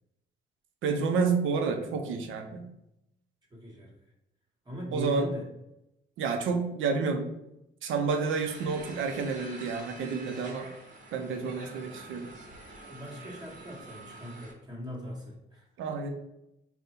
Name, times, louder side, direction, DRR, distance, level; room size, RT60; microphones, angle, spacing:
voice 1, 0.8-2.7 4.9-5.3 6.2-7.3 7.8-10.7 11.1-12.3 15.8-16.1, right 5 dB, 80° right, 5 dB, 0.6 m, -29 dB
voice 2, 3.5-3.9 4.6-5.5 11.9-12.0 12.8-15.7, equal, 20° right, -4 dB, 1.1 m, -40 dB
sound 1, 8.1-14.5, right 2 dB, 40° right, 1.1 m, -47 dB
3.8 x 2.3 x 4.1 m, 0.84 s
cardioid pair, 90°, 20 cm